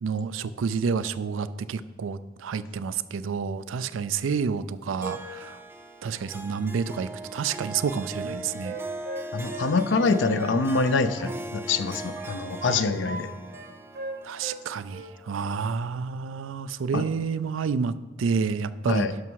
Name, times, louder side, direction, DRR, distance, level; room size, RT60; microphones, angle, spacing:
voice 1, 0.0-5.6 6.0-8.7 12.6-12.8 14.2-19.1, right 5 dB, 85° right, 15 dB, 0.4 m, -29 dB
Harp, 5.0-15.6, right 2 dB, 10° right, 0.5 m, -39 dB
Wind instrument woodwind instrument, 8.2-11.4 11.7-13.3 13.5-14.6 14.9-15.2, right 2 dB, 55° right, 0.8 m, -39 dB
voice 2, 9.3-13.3 16.9-17.0 18.9-19.1, left 4 dB, 70° left, 11 dB, 0.5 m, -25 dB
11.5 x 6.1 x 4.7 m, 1.2 s
head